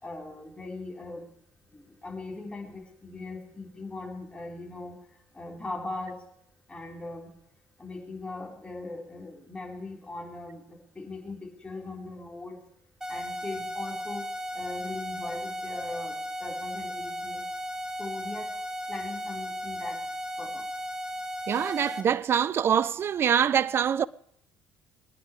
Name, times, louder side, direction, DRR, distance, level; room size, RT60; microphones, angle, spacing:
voice 1, 0.0-1.2 1.7-5.0 5.3-6.2 6.7-7.3 7.8-10.6 10.9-12.6 13.1-14.2 14.5-17.4 18.0-18.5 18.9-20.0 20.4-20.6, left 2 dB, 20° left, 5.1 m, -39 dB
sound 1, 13.0-22.0, equal, 10° right, 2.4 m, -35 dB
voice 2, 21.5-24.1, right 8 dB, 45° right, 0.5 m, -24 dB
23.0 x 10.0 x 5.0 m
hypercardioid pair, 60°, 6 cm